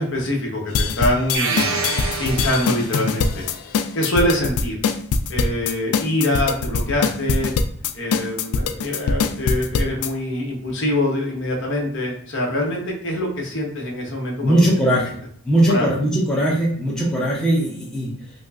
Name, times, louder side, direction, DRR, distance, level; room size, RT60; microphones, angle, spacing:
voice 1, 0.0-1.9 2.2-3.4 3.9-4.8 5.3-7.5 7.9-14.6 15.7-15.9, left 1 dB, 55° left, -1 dB, 0.9 m, -24 dB
sound 1, 0.7-10.1, left 5 dB, 80° left, 0.3 m, -22 dB
sound 2, 1.3-3.2, right 4 dB, 65° right, 0.5 m, -26 dB
voice 2, 14.4-15.2 15.4-18.3, right 1 dB, 5° left, -6 dB, 0.6 m, -19 dB
5.1 x 2.0 x 2.4 m, 0.63 s
head